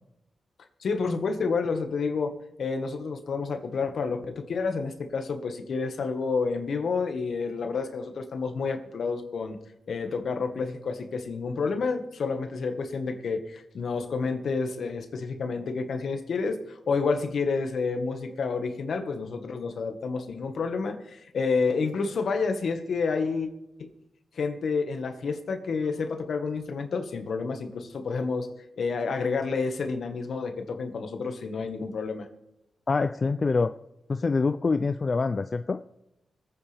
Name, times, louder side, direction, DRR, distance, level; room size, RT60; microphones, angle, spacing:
voice 1, 0.8-9.6 9.9-23.5 23.8-23.9 24.4-28.5 28.8-32.3, left 4 dB, 70° left, 6 dB, 1.6 m, -29 dB
voice 2, 32.9-33.7 34.1-35.8, left 4 dB, 40° left, 10 dB, 0.4 m, -25 dB
25.0 x 9.0 x 3.5 m, 0.87 s
cardioid pair, 80°, 0 cm